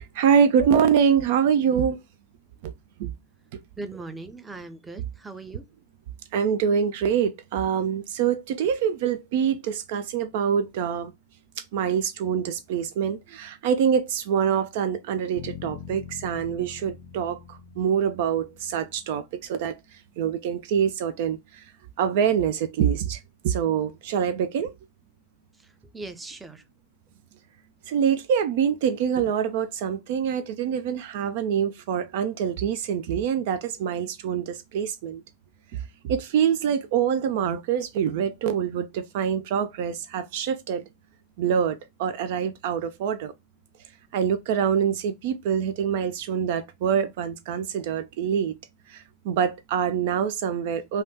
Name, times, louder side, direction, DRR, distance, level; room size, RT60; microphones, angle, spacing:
voice 1, 0.0-2.0 2.6-2.7 3.0-3.1 3.5-3.6 6.3-11.1 11.6-21.6 22.0-24.7 27.9-35.2 35.7-40.8 41.4-43.3 44.1-48.6 48.9-51.0, right 8 dB, 60° right, 0.3 m, -25 dB
voice 2, 3.8-5.6 25.6-26.6, right 3 dB, 10° right, 0.6 m, -39 dB
sound 1, 15.4-19.5, left 9 dB, 50° left, 0.4 m, -43 dB
3.3 x 2.3 x 2.7 m
hypercardioid pair, 100°, 0 cm